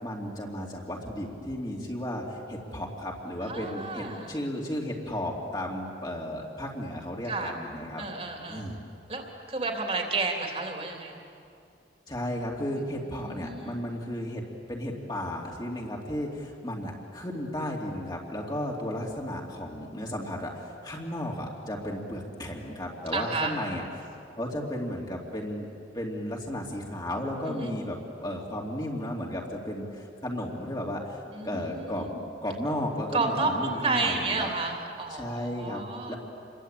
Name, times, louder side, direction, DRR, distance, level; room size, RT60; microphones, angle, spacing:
voice 1, 0.0-8.0 8.5-8.8 12.1-23.8 24.4-25.7 25.9-32.1 32.4-34.5 35.1-35.8 36.1-36.2, left 1 dB, 25° left, -1 dB, 2.8 m, -34 dB
voice 2, 3.5-4.4 7.3-7.5 8.0-8.6 9.1-11.2 13.2-13.8 23.1-23.5 27.5-27.7 31.3-32.2 33.1-36.2, right 3 dB, 35° right, 2 dB, 3.3 m, -31 dB
28.5 x 22.5 x 8.9 m, 2.5 s
head